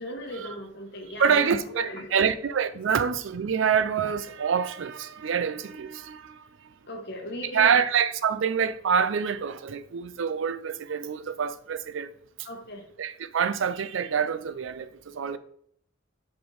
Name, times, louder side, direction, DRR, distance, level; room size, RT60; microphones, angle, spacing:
voice 1, 0.0-2.1 6.9-7.9 12.4-12.8, equal, 60° left, 1.2 m, -37 dB
voice 2, 1.2-6.4 7.5-12.1 13.0-15.4, right 7 dB, 70° right, 0.4 m, -26 dB
5.2 x 4.8 x 3.9 m
head